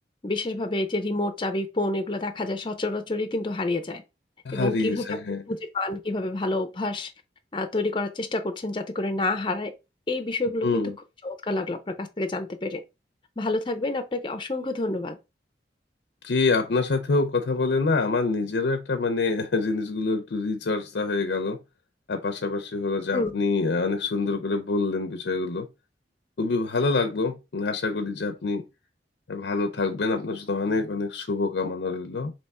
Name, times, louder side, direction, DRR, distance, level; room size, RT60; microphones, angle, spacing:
voice 1, 0.2-4.0 4.5-5.1 5.5-7.1 7.5-9.7 10.1-10.9 11.2-12.8 13.4-15.2 23.1-23.3, left 2 dB, 30° left, 0.6 m, -28 dB
voice 2, 4.5-5.4 10.6-10.9 16.2-21.6 22.1-25.7 26.4-28.6 29.3-32.3, left 3 dB, 75° left, 0.6 m, -26 dB
3.5 x 2.9 x 4.2 m
head